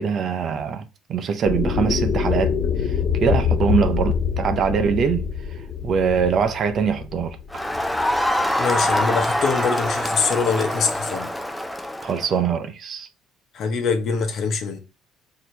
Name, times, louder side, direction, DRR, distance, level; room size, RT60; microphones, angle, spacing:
voice 1, 0.0-5.3 5.8-7.4 12.0-13.1, right 6 dB, 50° right, 0.6 m, -23 dB
sound 1, 1.4-8.4, left 7 dB, 35° left, 1.6 m, -25 dB
Crowd, 7.5-12.3, left 1 dB, 5° left, 0.4 m, -24 dB
voice 2, 8.6-11.3 13.5-14.8, left 5 dB, 55° left, 1.0 m, -23 dB
4.4 x 2.9 x 3.2 m
cardioid pair, 110°, 0 cm